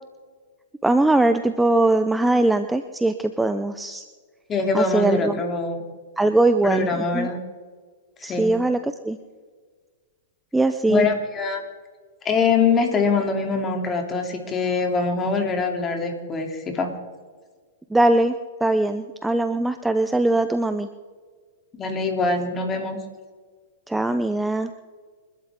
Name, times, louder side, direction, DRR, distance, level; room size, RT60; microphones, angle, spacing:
voice 1, 0.8-4.0 4.7-5.4 6.2-7.3 8.2-9.2 10.5-11.1 17.9-18.3 18.6-20.9 23.9-24.7, right 2 dB, 5° right, 9 dB, 0.8 m, -21 dB
voice 2, 4.5-5.8 6.6-7.4 8.2-8.5 10.9-11.6 12.2-16.9 21.8-23.0, left 4 dB, 25° left, 3 dB, 3.3 m, -23 dB
29.0 x 12.5 x 3.8 m, 1.5 s
hypercardioid pair, 115°, 0 cm